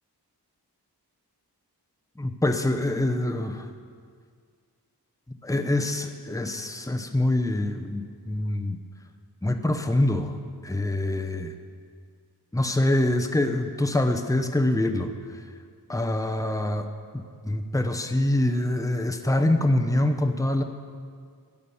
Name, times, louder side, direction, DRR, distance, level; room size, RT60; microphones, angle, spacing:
voice 1, 2.2-3.7 5.4-8.8 9.4-10.4 10.6-11.5 12.5-15.1 15.9-16.9 17.4-20.6, left 1 dB, 10° left, 6 dB, 0.8 m, -25 dB
12.5 x 9.5 x 7.0 m, 2.1 s
wide cardioid pair, 65°, 41 cm